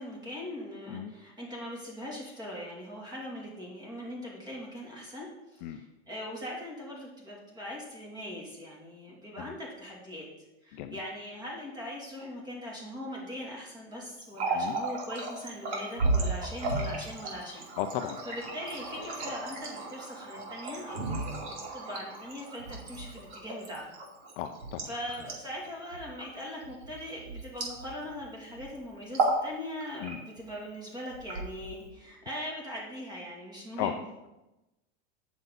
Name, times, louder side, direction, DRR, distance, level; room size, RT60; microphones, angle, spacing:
voice 1, 0.0-10.3 10.6-17.7 18.2-21.2 21.4-23.9 24.9-34.0, left 1 dB, 10° right, -3 dB, 2.6 m, -41 dB
Water tap faucet, 14.2-28.2 28.5-28.7 29.0-29.5 29.8-30.5 31.1-31.9, right 3 dB, 85° right, 2.6 m, -34 dB
voice 2, 17.8-18.2 21.1-21.2 24.4-24.9 30.0-30.2 33.8-33.9, left 11 dB, 45° left, 7 dB, 0.5 m, -35 dB
9.1 x 7.0 x 4.0 m, 1.0 s
supercardioid pair, 150°, 33 cm